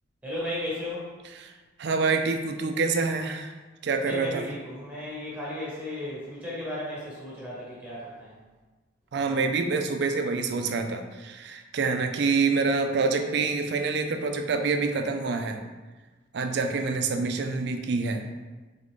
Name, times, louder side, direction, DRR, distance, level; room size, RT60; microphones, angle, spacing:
voice 1, 0.2-1.1 4.0-8.3, left 1 dB, 10° right, -7 dB, 1.2 m, -35 dB
voice 2, 1.8-3.5 3.8-4.5 9.1-15.6 16.3-18.2, right 4 dB, 60° right, 6 dB, 0.4 m, -26 dB
3.8 x 3.6 x 3.6 m, 1.3 s
head